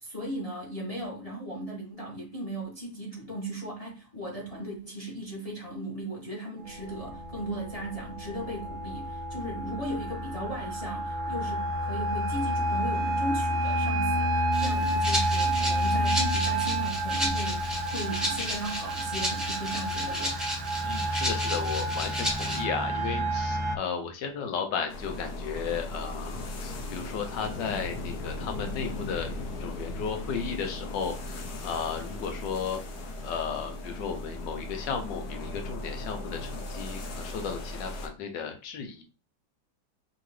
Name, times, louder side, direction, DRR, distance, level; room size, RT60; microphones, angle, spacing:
voice 1, 0.0-20.4, right 1 dB, 25° left, 1.2 m, -37 dB
sound 1, 6.6-23.8, right 1 dB, 65° right, 0.9 m, -30 dB
Rattle (instrument), 14.5-22.6, equal, ahead, 1.2 m, -33 dB
voice 2, 20.8-32.8 33.2-39.0, left 6 dB, 80° left, 1.4 m, -34 dB
sound 2, 24.9-38.1, left 2 dB, 65° left, 1.3 m, -37 dB
4.9 x 2.9 x 3.2 m
omnidirectional pair, 1.9 m